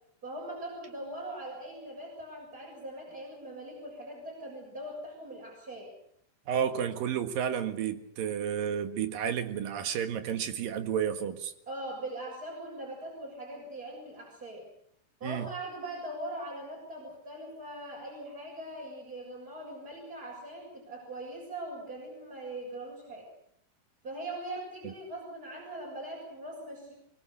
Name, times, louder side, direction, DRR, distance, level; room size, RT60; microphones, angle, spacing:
voice 1, 0.2-5.9 11.7-14.7 15.2-23.3 24.0-26.9, right 1 dB, 20° right, -3 dB, 7.9 m, -41 dB
voice 2, 6.5-11.5 15.2-15.5 24.8-24.9, right 8 dB, 60° right, 8 dB, 3.2 m, -31 dB
25.0 x 24.0 x 6.9 m, 0.71 s
omnidirectional pair, 4.8 m